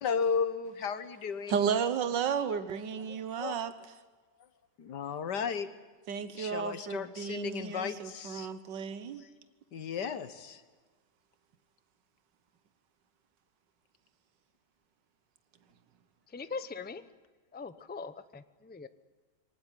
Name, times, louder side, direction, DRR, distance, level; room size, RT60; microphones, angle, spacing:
voice 1, 0.0-1.5 3.1-3.6 4.8-5.7 6.3-8.5 9.2-9.3 9.7-10.6, left 6 dB, 75° left, 13 dB, 2.0 m, -34 dB
voice 2, 1.5-3.7 6.1-9.2, right 7 dB, 90° right, 13 dB, 1.8 m, -33 dB
voice 3, 16.3-17.0 17.5-18.9, left 4 dB, 15° left, 13 dB, 0.4 m, -41 dB
23.5 x 19.0 x 10.0 m, 1.3 s
omnidirectional pair, 1.9 m